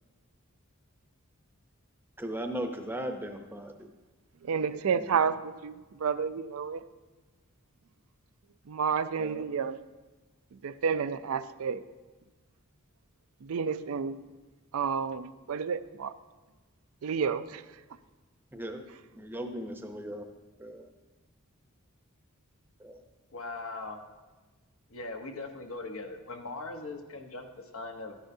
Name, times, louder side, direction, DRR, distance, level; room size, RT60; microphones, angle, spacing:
voice 1, 2.2-3.7 5.0-5.2 9.2-9.4 18.5-18.8 19.1-20.3 20.6-20.9 22.8-23.0, right 1 dB, 10° right, 5 dB, 0.7 m, -37 dB
voice 2, 4.4-6.8 8.7-9.8 10.6-11.8 13.4-14.2 14.7-16.1 17.0-17.6, right 6 dB, 80° right, 13 dB, 0.4 m, -30 dB
voice 3, 23.3-24.0 24.9-28.1, left 3 dB, 80° left, 4 dB, 1.1 m, -40 dB
12.5 x 10.5 x 2.7 m, 1.2 s
head